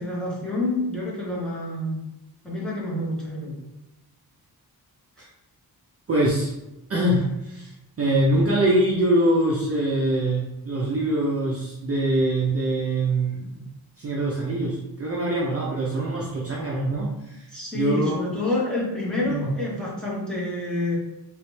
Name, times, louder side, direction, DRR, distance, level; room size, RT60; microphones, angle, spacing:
voice 1, 0.0-2.0 2.4-3.6 17.5-21.0, left 1 dB, ahead, -6 dB, 1.0 m, -28 dB
voice 2, 6.1-6.5 6.9-7.7 8.0-13.7 14.0-17.5 17.7-18.2 19.2-19.5, right 1 dB, 40° right, -3 dB, 0.5 m, -23 dB
3.2 x 2.9 x 3.1 m, 0.94 s
wide cardioid pair, 180°, 39 cm